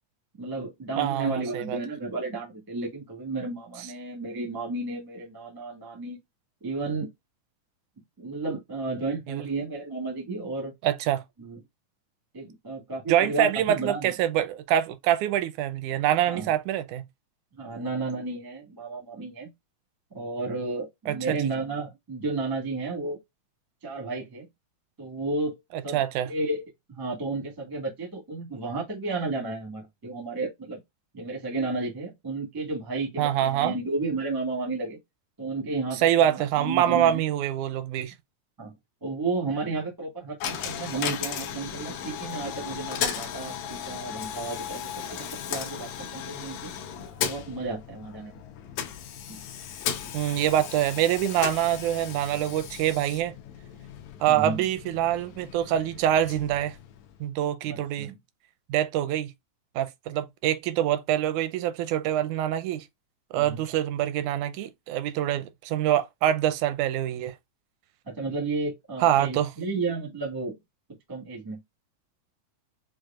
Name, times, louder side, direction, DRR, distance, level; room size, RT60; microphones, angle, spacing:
voice 1, 0.4-6.2 6.6-7.1 8.2-10.7 11.4-11.6 12.3-14.1 16.3-16.5 17.6-19.5 20.1-23.2 23.8-24.4 25.0-25.6 25.8-26.6 26.9-30.8 31.1-35.0 35.4-37.2 38.6-38.7 39.0-46.7 47.2-48.4 54.3-54.6 57.7-58.1 63.3-63.6 68.0-70.6 71.1-71.6, right 3 dB, 35° right, 0.3 m, -32 dB
voice 2, 1.0-1.8 9.3-9.4 10.8-11.2 13.1-17.0 21.1-21.5 25.7-26.3 33.2-33.7 35.9-38.1 50.1-53.3 54.2-56.8 57.2-58.1 58.7-59.3 59.8-62.9 63.3-67.4 69.0-69.5, right 11 dB, 85° right, 2.0 m, -25 dB
Coin (dropping), 40.4-57.3, left 8 dB, 75° left, 2.0 m, -36 dB
6.2 x 2.3 x 2.3 m
omnidirectional pair, 3.4 m